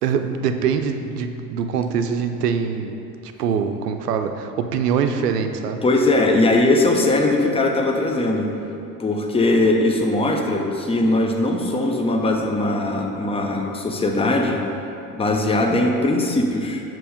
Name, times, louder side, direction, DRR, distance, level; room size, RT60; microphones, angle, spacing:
voice 1, 0.0-5.8, right 6 dB, 90° right, 7 dB, 0.5 m, -24 dB
voice 2, 5.8-8.5 9.0-14.6 15.1-16.8, left 2 dB, 15° left, 2 dB, 0.6 m, -20 dB
6.8 x 3.1 x 5.0 m, 2.8 s
hypercardioid pair, 70°, 46 cm